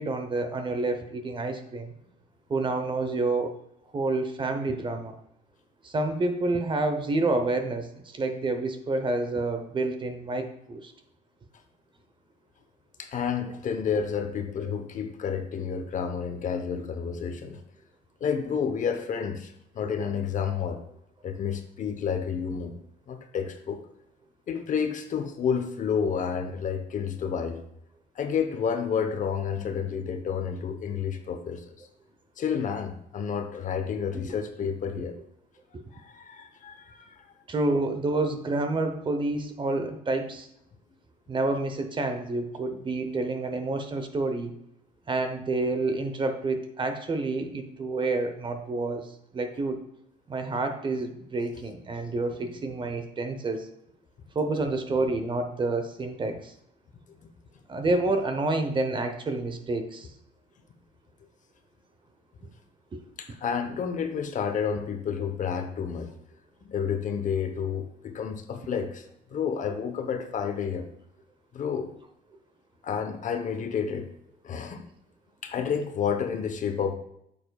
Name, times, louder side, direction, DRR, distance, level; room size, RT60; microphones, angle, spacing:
voice 1, 0.0-1.9 2.5-3.5 3.9-5.2 5.8-10.9 34.1-34.3 35.7-35.8 37.5-40.5 41.3-44.5 45.1-49.8 50.3-53.7 54.3-56.5 57.7-60.1 62.9-63.0, right 2 dB, 30° right, 7 dB, 0.8 m, -28 dB
voice 2, 13.0-17.6 18.2-20.8 21.2-22.7 23.1-23.8 24.5-27.6 28.1-31.9 32.4-35.1 35.9-37.2 52.4-52.5 57.2-57.3 62.4-62.5 63.2-66.1 66.6-70.9 71.5-71.9 72.8-74.1 74.4-74.8 75.4-76.9, left 7 dB, 50° left, 7 dB, 0.9 m, -30 dB
8.7 x 6.8 x 2.3 m, 0.75 s
cardioid pair, 110°, 17 cm